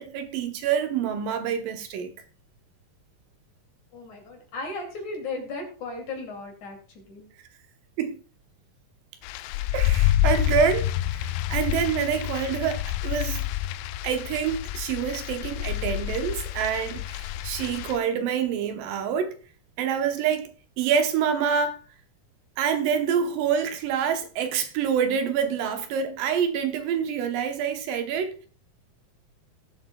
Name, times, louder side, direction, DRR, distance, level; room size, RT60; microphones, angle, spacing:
voice 1, 0.0-2.1 8.0-8.2 9.7-13.5 14.0-19.3 19.8-20.5 20.8-21.8 22.6-28.5, right 7 dB, 80° right, 2.6 m, -26 dB
voice 2, 3.9-7.3, left 3 dB, 55° left, 3.8 m, -36 dB
sound 1, 9.2-18.0, left 13 dB, 85° left, 2.3 m, -28 dB
18.5 x 7.6 x 2.3 m
omnidirectional pair, 4.0 m